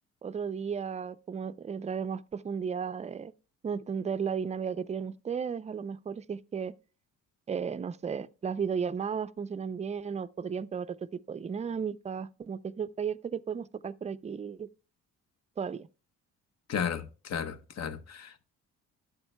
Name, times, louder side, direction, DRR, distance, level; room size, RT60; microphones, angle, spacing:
voice 1, 0.2-3.3 3.6-6.7 7.5-11.0 11.3-14.7 15.6-15.9, right 6 dB, 25° right, 0.4 m, -34 dB
voice 2, 16.7-18.4, left 7 dB, 60° left, 0.9 m, -34 dB
12.5 x 8.0 x 2.2 m
cardioid pair, 90°, 30 cm